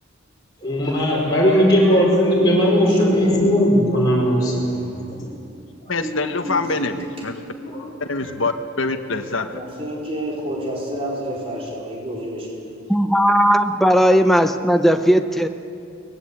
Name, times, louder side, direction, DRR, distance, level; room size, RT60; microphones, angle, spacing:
voice 1, 0.6-4.5 5.1-5.3 5.8-7.1 7.5-7.9 8.2-8.3, equal, 20° left, -6 dB, 5.2 m, -19 dB
voice 2, 2.3-3.4 4.8-5.1 6.5-6.9 9.5-12.6, equal, 25° right, -3 dB, 4.7 m, -28 dB
voice 3, 5.9-7.3 8.0-9.9, left 3 dB, 65° left, 7 dB, 1.4 m, -25 dB
voice 4, 12.9-15.5, equal, ahead, 6 dB, 0.9 m, -16 dB
23.0 x 20.0 x 8.6 m, 2.5 s
head